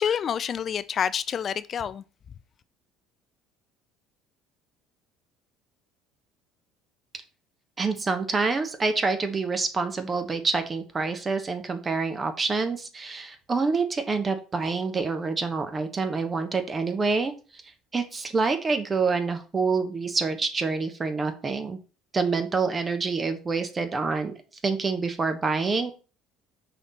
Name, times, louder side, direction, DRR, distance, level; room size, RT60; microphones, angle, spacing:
voice 1, 0.0-2.0, left 8 dB, 45° left, 0.3 m, -27 dB
voice 2, 7.8-17.6 17.9-21.8 22.1-24.3 24.6-26.0, right 4 dB, 30° right, 1.2 m, -27 dB
5.7 x 4.1 x 4.2 m
hypercardioid pair, 70°, 0 cm